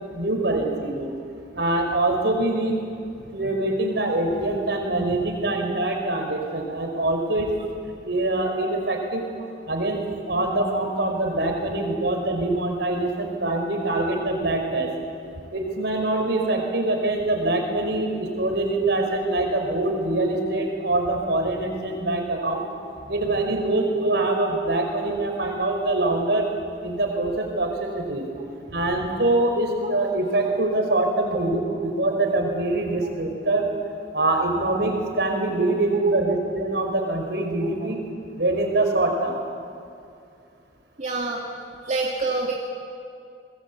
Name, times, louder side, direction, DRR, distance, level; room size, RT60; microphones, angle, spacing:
voice 1, 0.1-1.1 1.5-2.8 3.3-7.5 8.0-9.3 9.7-10.0 10.3-14.9 15.5-22.7 23.1-26.5 26.8-28.2 28.7-33.7 34.1-38.0 38.4-39.4, right 2 dB, 65° right, 3 dB, 5.0 m, -24 dB
voice 2, 41.0-41.4 41.8-42.5, right 3 dB, 40° right, -2 dB, 2.2 m, -26 dB
29.5 x 21.5 x 8.5 m, 2.4 s
head